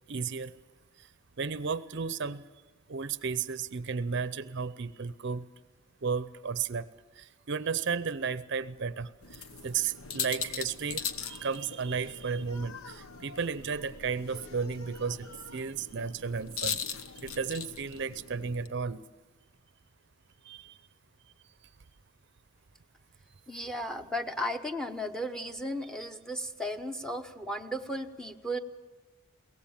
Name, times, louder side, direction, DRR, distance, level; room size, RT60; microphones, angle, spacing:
voice 1, 0.1-0.5 1.4-2.4 2.9-5.5 6.0-6.9 7.2-16.8 17.2-19.0 20.4-20.8, right 5 dB, 55° right, 14 dB, 0.6 m, -34 dB
sound 1, 9.2-18.7, left 6 dB, 85° left, 1.1 m, -40 dB
voice 2, 23.5-28.6, equal, 5° left, 7 dB, 0.8 m, -35 dB
22.5 x 18.0 x 7.3 m, 1.2 s
head